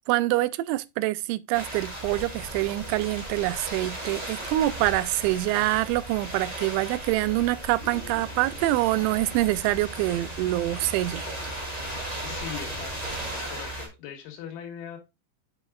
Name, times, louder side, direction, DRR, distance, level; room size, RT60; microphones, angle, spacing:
voice 1, 0.1-11.3, right 17 dB, 90° right, 3.0 m, -25 dB
sound 1, 1.5-13.9, right 1 dB, 20° right, 1.0 m, -36 dB
sound 2, 7.8-13.3, equal, 25° left, 1.8 m, -45 dB
voice 2, 12.2-15.0, left 8 dB, 80° left, 4.2 m, -40 dB
9.1 x 5.9 x 2.3 m
omnidirectional pair, 5.3 m